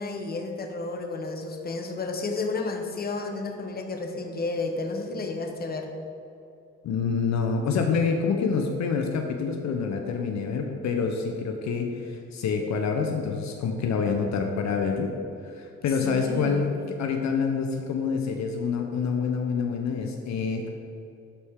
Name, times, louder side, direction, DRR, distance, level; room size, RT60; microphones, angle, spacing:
voice 1, 0.0-5.9 16.0-16.8, left 3 dB, 30° left, 4 dB, 0.9 m, -32 dB
voice 2, 6.8-15.1 15.4-20.7, left 5 dB, 65° left, 4 dB, 0.7 m, -27 dB
11.5 x 4.2 x 3.6 m, 2.7 s
cardioid pair, 90°, 30 cm